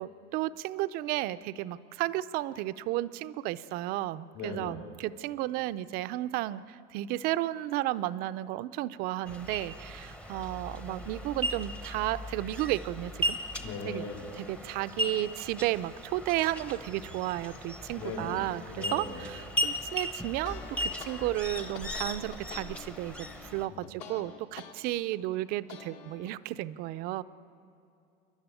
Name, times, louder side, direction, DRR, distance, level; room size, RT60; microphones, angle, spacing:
voice 1, 0.0-13.4 13.8-14.1 14.4-27.2, right 15 dB, 50° right, 15 dB, 0.5 m, -33 dB
voice 2, 4.3-4.8 13.5-14.3 17.9-18.4 18.7-19.3 23.7-23.9, left 4 dB, 75° left, 1 dB, 5.1 m, -39 dB
sound 1, 9.3-23.6, equal, 5° left, 0.8 m, -37 dB
sound 2, 20.2-24.7 25.1-26.3, left 7 dB, 60° left, 1.9 m, -47 dB
28.5 x 11.5 x 9.0 m, 2.6 s
cardioid pair, 165°, 21 cm